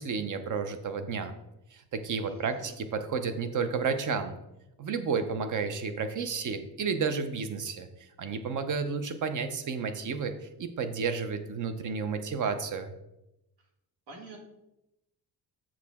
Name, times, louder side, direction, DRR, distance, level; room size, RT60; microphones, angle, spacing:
voice 1, 0.0-1.3 1.7-4.4 4.8-12.9, right 5 dB, 45° right, 9 dB, 0.6 m, -32 dB
voice 2, 2.3-2.8 13.6-13.7 14.1-14.4, right 3 dB, 70° right, 1 dB, 1.6 m, -48 dB
7.2 x 4.8 x 3.5 m, 0.90 s
wide cardioid pair, 165°, 42 cm